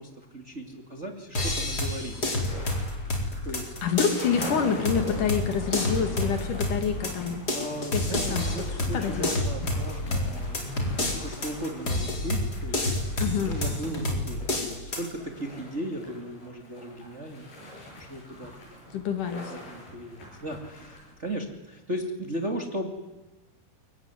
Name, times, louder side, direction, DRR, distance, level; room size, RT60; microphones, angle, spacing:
voice 1, 0.0-2.2 3.4-4.0 7.5-18.9 19.5-22.9, right 1 dB, 20° right, 3 dB, 2.2 m, -37 dB
sound 1, 1.3-15.1, left 1 dB, 25° left, 4.5 m, -29 dB
sound 2, 1.5-21.3, left 1 dB, 85° left, 9.1 m, -42 dB
voice 2, 3.8-7.4 7.9-8.4 8.9-9.4 13.2-13.6 18.9-19.5, left 7 dB, 60° left, 7 dB, 3.4 m, -27 dB
25.5 x 23.0 x 9.7 m, 1.1 s
omnidirectional pair, 4.3 m